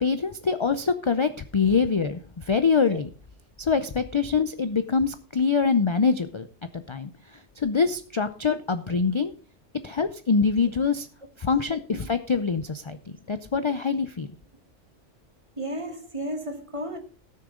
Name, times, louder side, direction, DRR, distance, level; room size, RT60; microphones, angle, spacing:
voice 1, 0.0-3.1 3.6-6.5 6.7-7.1 7.6-9.3 9.8-11.1 11.4-13.0 13.3-14.3, left 5 dB, 45° left, 0.4 m, -24 dB
voice 2, 15.6-17.0, right 1 dB, 25° right, 1.5 m, -34 dB
17.5 x 6.6 x 3.7 m
omnidirectional pair, 1.2 m